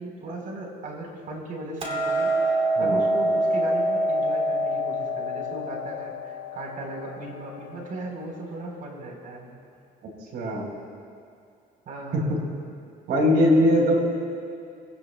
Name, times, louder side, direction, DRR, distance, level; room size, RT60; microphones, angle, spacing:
voice 1, 0.0-9.5 11.9-12.3, right 2 dB, 55° right, 0 dB, 3.8 m, -37 dB
Hammer, 1.8-8.0, right 1 dB, 40° right, 2.6 m, -26 dB
voice 2, 10.3-10.7 12.1-12.3 13.1-13.9, left 1 dB, 75° right, 0 dB, 3.9 m, -20 dB
24.5 x 17.0 x 2.2 m, 2.4 s
cardioid pair, 110°, 17 cm